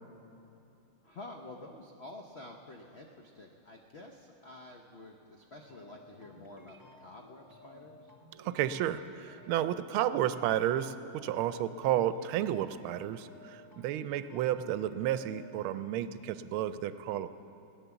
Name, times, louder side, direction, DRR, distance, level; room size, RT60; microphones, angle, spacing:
voice 1, 1.0-8.1, left 2 dB, 80° left, 2 dB, 0.5 m, -49 dB
sound 1, 5.7-15.8, left 1 dB, 25° right, 0.4 m, -56 dB
voice 2, 8.4-17.3, right 11 dB, 85° right, 13 dB, 1.4 m, -32 dB
17.0 x 9.8 x 7.0 m, 2.8 s
omnidirectional pair, 2.3 m